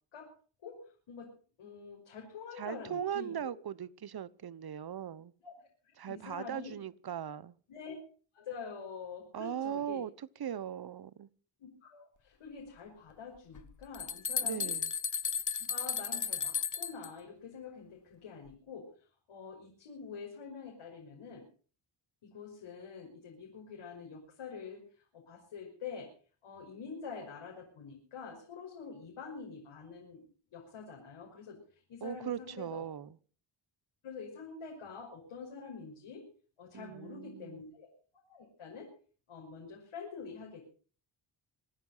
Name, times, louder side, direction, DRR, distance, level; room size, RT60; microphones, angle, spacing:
voice 1, 1.6-3.5 5.4-5.5 6.0-6.8 7.7-7.9 8.3-10.0 11.6-14.7 15.6-18.9 19.3-21.5 22.2-26.1 26.4-30.2 30.5-32.8 34.0-36.3 36.6-37.9 38.3-38.9 39.3-40.7, left 5 dB, 75° left, 5.9 m, -46 dB
voice 2, 2.6-5.3 6.0-7.5 9.3-10.1 10.4-11.3 14.4-14.9 32.0-33.1 36.7-37.6, right 9 dB, 50° right, 1.1 m, -39 dB
sound 1, 13.5-17.1, left 7 dB, 40° left, 1.2 m, -34 dB
26.0 x 9.6 x 5.7 m
cardioid pair, 80°, 49 cm